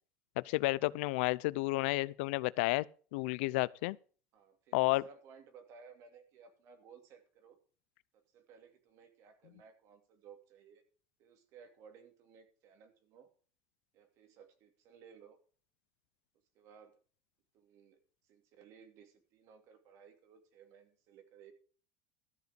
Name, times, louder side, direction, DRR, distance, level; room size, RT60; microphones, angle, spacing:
voice 1, 0.4-2.9 3.1-4.0 4.7-5.0, left 22 dB, 85° left, 0.4 m, -31 dB
voice 2, 4.3-7.6 8.1-10.8 11.2-13.3 13.9-15.4 16.5-17.0 17.5-21.5, right 6 dB, 55° right, 2.5 m, -59 dB
13.0 x 5.1 x 8.0 m
cardioid pair, 140°, 6 cm